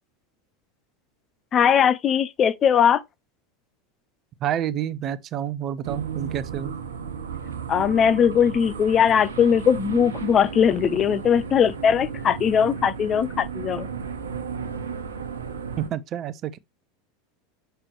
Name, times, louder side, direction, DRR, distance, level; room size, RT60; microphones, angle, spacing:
voice 1, 1.5-3.0 7.7-13.9, left 8 dB, 35° left, 0.6 m, -20 dB
voice 2, 4.4-6.7 15.8-16.6, right 10 dB, 40° right, 0.6 m, -29 dB
sound 1, 5.8-15.9, right 6 dB, 80° right, 1.0 m, -34 dB
6.7 x 5.8 x 3.0 m
hypercardioid pair, 85°, 0 cm